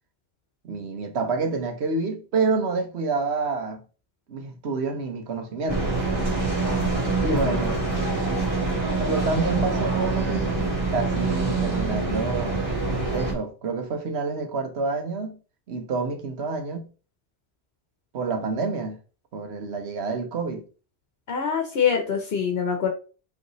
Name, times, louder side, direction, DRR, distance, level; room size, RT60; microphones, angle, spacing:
voice 1, 0.6-3.8 4.3-5.9 7.2-7.8 9.0-12.6 13.1-15.4 15.7-16.9 18.1-19.0 19.3-20.6, right 4 dB, 85° right, 1.2 m, -28 dB
sound 1, 5.7-13.3, right 3 dB, 25° right, 1.9 m, -25 dB
voice 2, 21.3-22.9, left 7 dB, 75° left, 1.0 m, -24 dB
5.2 x 3.3 x 3.0 m
omnidirectional pair, 1.1 m